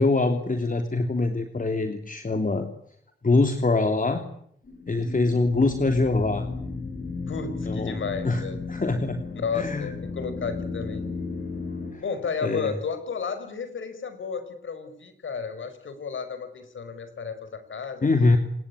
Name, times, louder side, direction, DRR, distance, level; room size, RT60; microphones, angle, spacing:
voice 1, 0.0-2.7 3.2-4.2 4.9-6.5 7.7-8.0 8.2-8.4 8.7-9.2 9.5-9.9 11.9-12.0 12.4-12.7 18.0-18.4, left 3 dB, 40° left, 6 dB, 3.1 m, -23 dB
sound 1, 4.6-11.9, left 4 dB, 60° left, 7.1 m, -34 dB
voice 2, 7.3-8.6 9.3-11.0 12.0-18.4, left 5 dB, 80° left, 10 dB, 5.1 m, -33 dB
26.5 x 20.5 x 10.0 m, 0.69 s
cardioid pair, 55°, 20 cm